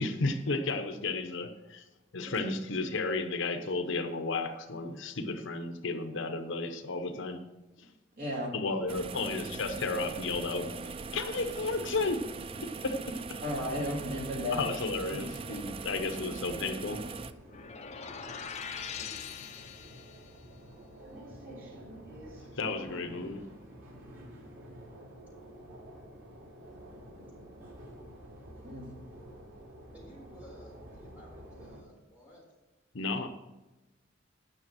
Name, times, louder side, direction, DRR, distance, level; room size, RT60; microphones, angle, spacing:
voice 1, 0.0-1.8 2.1-7.4 7.8-7.9 8.5-10.7 11.1-12.2 12.6-13.4 14.5-17.0 22.6-23.4 32.9-33.3, left 3 dB, 65° left, 7 dB, 0.8 m, -33 dB
voice 2, 8.2-8.5 13.4-14.7 15.1-15.3 28.6-28.9, left 1 dB, 45° right, -2 dB, 2.7 m, -34 dB
sound 1, 8.9-17.3, right 4 dB, 25° right, 0.3 m, -41 dB
voice 3, 14.5-15.1 15.9-16.1 17.2-17.3 18.8-19.1 29.9-32.4, equal, 5° right, -4 dB, 4.0 m, -53 dB
sound 2, 15.1-31.8, right 1 dB, 80° right, 3.3 m, -50 dB
sound 3, 17.5-20.3, left 7 dB, 35° left, 0.7 m, -42 dB
10.5 x 6.1 x 6.1 m, 1.1 s
head